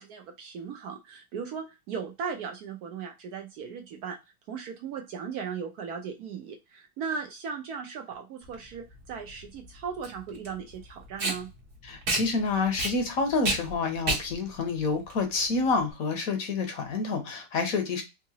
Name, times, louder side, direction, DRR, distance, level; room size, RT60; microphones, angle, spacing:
voice 1, 0.0-4.2 4.5-11.5, right 6 dB, 70° right, 3 dB, 1.0 m, -37 dB
Packing tape duct tape, 8.4-15.9, right 3 dB, 50° right, 1.2 m, -33 dB
voice 2, 11.8-18.0, left 4 dB, 60° left, 6 dB, 1.1 m, -28 dB
3.8 x 2.6 x 2.7 m, 0.24 s
omnidirectional pair, 1.9 m